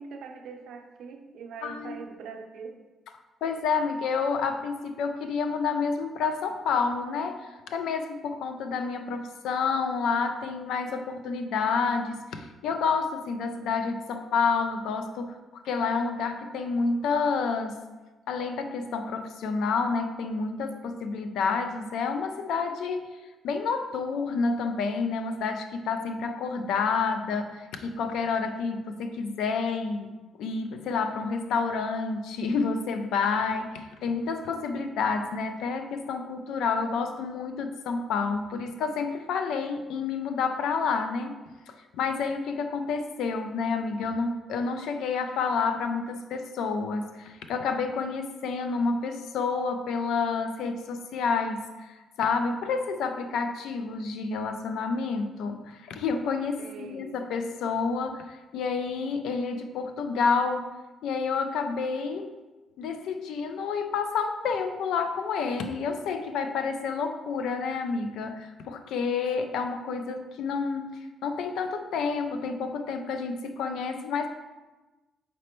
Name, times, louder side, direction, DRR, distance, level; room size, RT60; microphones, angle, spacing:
voice 1, 0.0-2.8 56.6-57.2, right 5 dB, 75° right, 3 dB, 0.5 m, -42 dB
voice 2, 1.6-2.0 3.4-15.4 15.6-17.8 18.3-41.4 41.7-60.7 61.0-62.3 62.8-74.3, left 5 dB, 80° left, 7 dB, 0.4 m, -29 dB
5.0 x 3.2 x 3.0 m, 1.2 s
cardioid pair, 90°, 0 cm